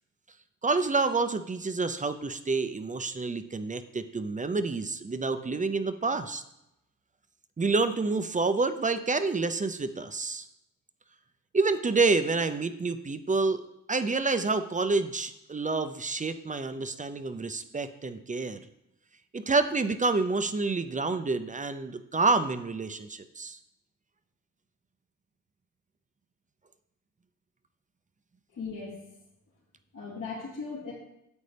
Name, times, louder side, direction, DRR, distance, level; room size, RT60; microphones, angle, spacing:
voice 1, 0.6-6.4 7.6-10.5 11.5-13.6 13.9-18.6 19.3-23.6, right 3 dB, 25° right, 10 dB, 0.6 m, -28 dB
voice 2, 28.5-29.0 29.9-30.9, left 4 dB, 80° left, -8 dB, 2.8 m, -37 dB
9.6 x 8.0 x 3.4 m, 0.85 s
cardioid pair, 90°, 32 cm